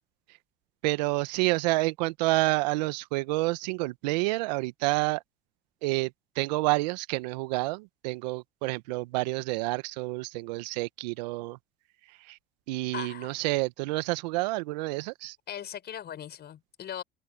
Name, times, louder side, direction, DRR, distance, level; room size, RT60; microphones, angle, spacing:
voice 1, 0.8-5.2 5.8-11.6 12.2-12.4 12.7-15.4, right 22 dB, 80° right, 1.2 m, -29 dB
voice 2, 12.9-13.3 15.5-17.0, left 10 dB, 50° left, 6.3 m, -39 dB
open air
hypercardioid pair, 65°, 21 cm